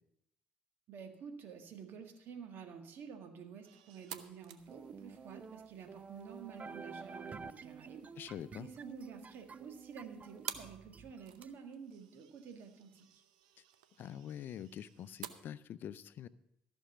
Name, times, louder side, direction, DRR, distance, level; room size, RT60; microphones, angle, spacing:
voice 1, 0.9-8.1 8.6-13.2, right 6 dB, 65° right, 6 dB, 1.7 m, -50 dB
sound 1, 3.6-15.3, right 11 dB, 90° right, 0.6 m, -53 dB
sound 2, 4.7-11.5, right 5 dB, 40° right, 0.6 m, -50 dB
voice 2, 8.2-8.7 14.0-16.3, left 10 dB, 60° left, 15 dB, 0.5 m, -45 dB
14.0 x 6.3 x 6.9 m, 0.79 s
hypercardioid pair, 55°, 4 cm